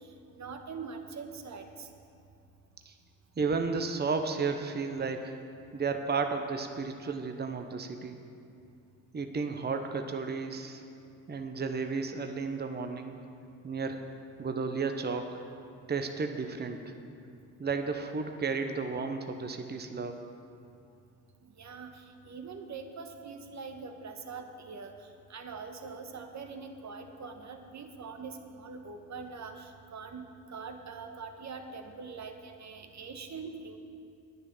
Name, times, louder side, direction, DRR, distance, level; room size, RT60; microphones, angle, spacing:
voice 1, 0.0-1.9 21.4-33.8, right 4 dB, 45° right, 5 dB, 1.4 m, -43 dB
voice 2, 3.4-5.3 5.7-8.2 9.1-10.8 11.3-13.2 13.6-14.0 14.4-15.4 15.9-16.9 17.6-20.3, right 4 dB, 25° right, 6 dB, 1.0 m, -33 dB
9.9 x 9.5 x 6.2 m, 2.5 s
supercardioid pair, 55°, 38 cm